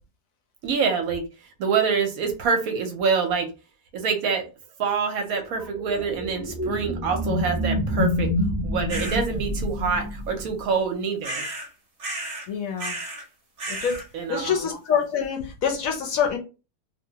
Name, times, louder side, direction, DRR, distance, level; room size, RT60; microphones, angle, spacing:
voice 1, 0.6-1.3 1.6-3.5 3.9-4.5 4.8-8.3 8.6-11.4 14.1-14.7, right 5 dB, 70° right, 0.9 m, -26 dB
sound 1, 5.6-10.6, left 1 dB, 25° right, 0.3 m, -27 dB
sound 2, 8.9-9.2 11.2-11.7 12.0-12.5 12.8-13.2 13.6-14.0, right 2 dB, 45° right, 0.7 m, -32 dB
voice 2, 12.5-13.0 13.7-14.0 14.3-16.4, left 7 dB, 65° left, 0.9 m, -25 dB
2.9 x 2.1 x 2.7 m
omnidirectional pair, 1.7 m